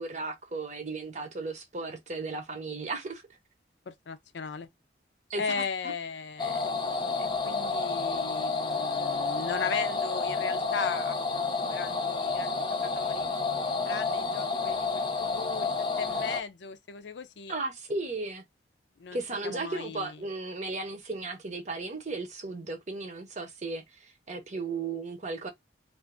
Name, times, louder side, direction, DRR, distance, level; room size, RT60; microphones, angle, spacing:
voice 1, 0.0-3.2 5.3-5.6 17.5-18.4 19.1-25.5, right 3 dB, 40° right, 0.7 m, -35 dB
voice 2, 3.9-4.7 5.4-6.6 7.2-13.3 13.9-15.7 16.0-17.5 19.0-20.1, left 5 dB, 80° left, 0.5 m, -37 dB
sound 1, 6.4-16.4, left 4 dB, 25° left, 0.5 m, -30 dB
2.5 x 2.5 x 3.5 m
head